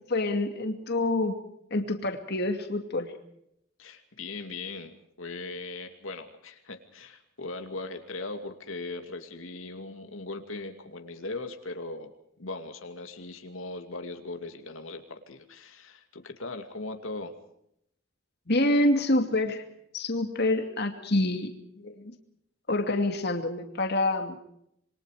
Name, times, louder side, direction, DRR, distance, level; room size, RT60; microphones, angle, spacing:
voice 1, 0.1-1.4 1.7-3.1 18.5-19.6 19.9-21.5 21.8-22.1 22.7-24.4, left 1 dB, 50° left, 5 dB, 2.5 m, -27 dB
voice 2, 3.8-12.1 12.4-17.3, left 2 dB, 70° left, 5 dB, 2.5 m, -39 dB
27.0 x 23.5 x 5.0 m, 0.75 s
head